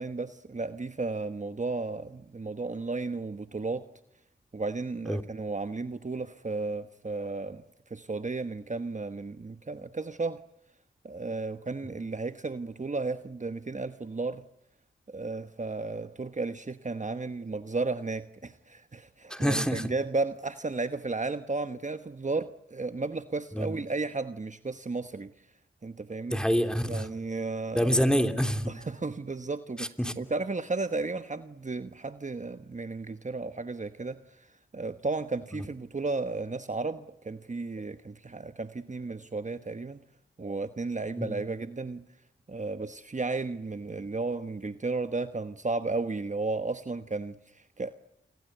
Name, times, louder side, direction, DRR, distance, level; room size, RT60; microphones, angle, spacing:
voice 1, 0.0-3.9 4.5-7.6 7.9-10.4 11.0-14.4 15.1-25.3 25.8-26.4 26.9-28.0 28.7-34.5 34.7-40.0 40.4-42.0 42.5-47.9, right 3 dB, 35° right, 1.2 m, -34 dB
voice 2, 19.3-19.9 23.5-23.7 26.3-27.1 27.7-28.7 29.8-30.1 35.5-35.6 41.2-41.4, equal, 5° left, 3.2 m, -27 dB
29.5 x 23.5 x 8.0 m
cardioid pair, 55°, 21 cm